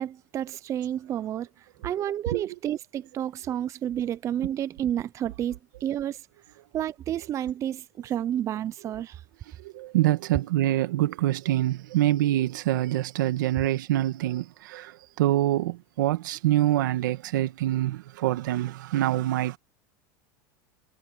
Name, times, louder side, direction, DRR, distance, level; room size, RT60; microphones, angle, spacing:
voice 1, 0.0-1.5 1.8-6.2 6.7-9.2, right 10 dB, 30° right, 0.5 m, -30 dB
voice 2, 9.7-14.9 15.2-19.6, right 14 dB, 90° right, 2.2 m, -25 dB
supercardioid pair, 135°, 10 cm